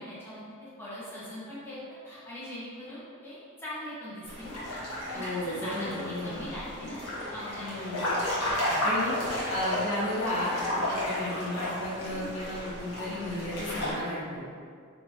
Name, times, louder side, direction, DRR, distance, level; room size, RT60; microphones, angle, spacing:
voice 1, 0.0-4.8 5.1-8.1 8.4-8.9, left 1 dB, 10° left, -11 dB, 1.0 m, -41 dB
sound 1, 4.2-13.9, left 1 dB, 85° left, 1.2 m, -33 dB
voice 2, 5.1-6.5 7.6-8.0 8.8-9.1 9.5-14.4, left 1 dB, 55° left, -7 dB, 0.9 m, -33 dB
4.3 x 3.0 x 2.8 m, 2.1 s
head